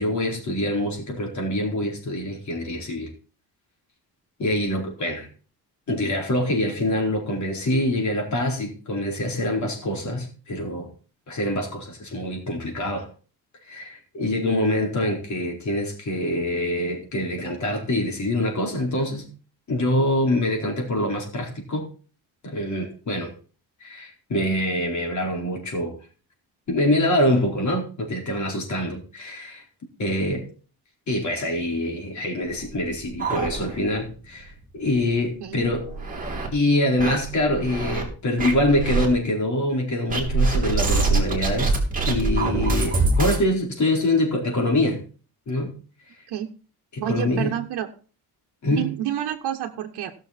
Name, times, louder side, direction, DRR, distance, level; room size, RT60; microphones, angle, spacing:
voice 1, 0.0-3.1 4.4-5.3 5.9-10.9 11.3-13.1 13.7-19.3 19.7-21.9 22.4-23.3 23.8-25.9 26.7-29.6 30.0-30.5 31.1-35.9 36.5-41.8 42.0-45.0 45.5-45.7 46.9-47.5 48.6-48.8, left 1 dB, 45° left, 4.4 m, -25 dB
sound 1, 32.5-34.1 34.4-34.5 34.9-35.0 35.6-36.5 37.0-38.0 38.4-39.1 40.1-43.4, right 3 dB, 20° right, 2.9 m, -24 dB
voice 2, 47.0-47.9 48.7-50.1, right 11 dB, 85° right, 1.2 m, -29 dB
16.5 x 6.6 x 4.3 m
cardioid pair, 140°, 39 cm